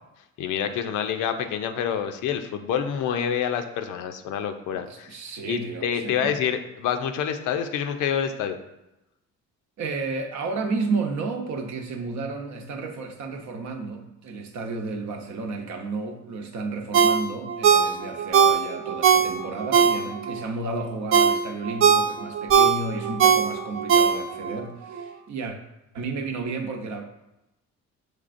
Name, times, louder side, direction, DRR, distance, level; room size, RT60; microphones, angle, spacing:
voice 1, 0.4-5.2 5.4-8.6, left 8 dB, 85° left, 7 dB, 0.5 m, -27 dB
voice 2, 4.7-6.3 9.8-25.6 25.9-27.0, right 3 dB, 65° right, 4 dB, 0.8 m, -32 dB
Ringtone, 16.9-20.4 20.8-24.6 24.9-25.0, right 7 dB, 45° right, 0.4 m, -20 dB
6.5 x 3.3 x 2.5 m, 0.93 s
cardioid pair, 90°, 30 cm